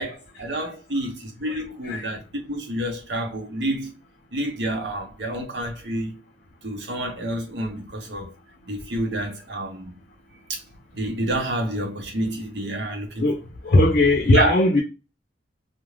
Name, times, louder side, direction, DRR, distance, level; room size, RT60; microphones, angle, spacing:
voice 1, 0.0-3.9 4.3-6.2 6.6-8.3 8.7-10.0 10.5-10.6 10.9-13.3 14.3-14.5, right 1 dB, 75° right, 0.8 m, -28 dB
voice 2, 13.2-14.8, left 2 dB, 55° left, 0.5 m, -19 dB
2.5 x 2.1 x 3.2 m
head